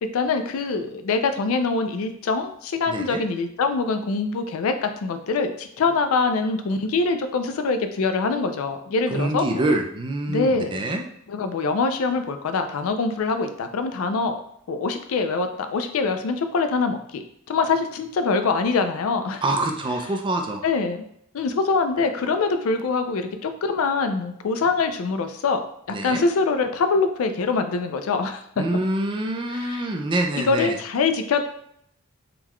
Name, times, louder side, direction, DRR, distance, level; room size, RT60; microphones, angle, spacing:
voice 1, 0.0-9.7 10.3-10.8 11.3-14.4 14.7-19.4 20.6-21.0 21.3-25.6 26.0-28.6 29.5-29.8 30.4-31.4, left 4 dB, 70° left, 8 dB, 0.4 m, -24 dB
voice 2, 2.9-3.2 9.1-11.0 19.4-20.6 25.9-26.2 28.6-30.8, right 2 dB, 25° right, 3 dB, 0.4 m, -25 dB
3.7 x 2.2 x 3.0 m, 0.71 s
head